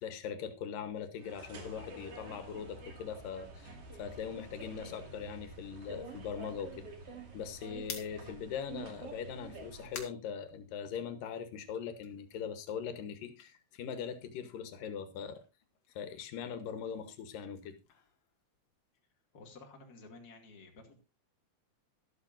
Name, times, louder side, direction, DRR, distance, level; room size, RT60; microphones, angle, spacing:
voice 1, 0.0-6.9 7.3-15.4 16.0-17.7, left 7 dB, 85° left, 10 dB, 2.9 m, -41 dB
sound 1, 1.2-10.0, right 2 dB, 50° right, 3.1 m, -48 dB
sound 2, 7.8-11.2 11.6-14.6 14.8-19.0, left 7 dB, 55° left, 2.5 m, -52 dB
voice 2, 19.3-21.0, left 3 dB, 30° left, 2 dB, 2.5 m, -53 dB
13.5 x 12.5 x 2.6 m, 0.26 s
omnidirectional pair, 3.8 m